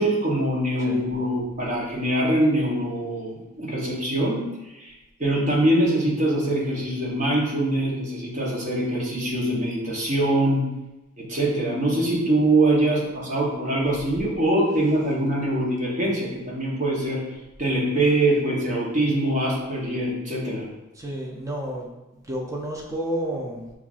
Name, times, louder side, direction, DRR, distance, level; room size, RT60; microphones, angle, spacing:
voice 1, 0.0-4.4 4.7-4.9 5.2-10.7 11.2-17.2 17.6-20.7, right 1 dB, 35° right, -4 dB, 0.9 m, -23 dB
voice 2, 20.9-23.7, right 1 dB, 15° right, -2 dB, 0.5 m, -31 dB
5.8 x 2.4 x 2.4 m, 1.0 s
head